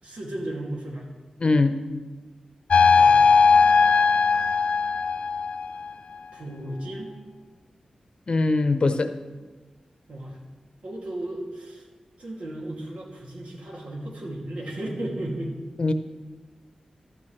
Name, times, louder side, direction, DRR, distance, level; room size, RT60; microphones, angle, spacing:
voice 1, 0.0-1.1 3.0-3.3 6.3-7.2 10.1-10.4 10.8-11.9 12.2-15.6, right 1 dB, 80° right, -2 dB, 2.7 m, -34 dB
voice 2, 1.4-1.8 8.3-9.1 15.8-15.9, left 3 dB, 50° left, 9 dB, 0.7 m, -21 dB
sound 1, 2.7-5.9, left 5 dB, 70° left, 0.4 m, -18 dB
14.5 x 12.0 x 3.3 m, 1.3 s
wide cardioid pair, 100°, 2 cm